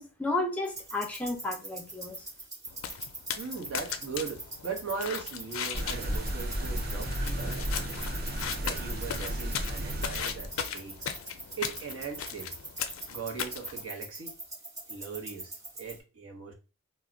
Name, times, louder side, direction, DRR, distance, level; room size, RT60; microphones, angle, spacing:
voice 1, 0.0-2.2, left 2 dB, 5° left, 0.4 m, -32 dB
sound 1, 0.6-16.0, right 2 dB, 15° right, 0.8 m, -44 dB
sound 2, 2.7-13.9, left 7 dB, 75° left, 0.4 m, -38 dB
voice 2, 3.4-7.9 8.5-11.1 11.6-12.5 13.1-14.3 14.9-16.5, right 5 dB, 75° right, 0.8 m, -39 dB
sound 3, 5.7-10.6, right 1 dB, 45° right, 0.5 m, -33 dB
2.3 x 2.0 x 3.7 m
head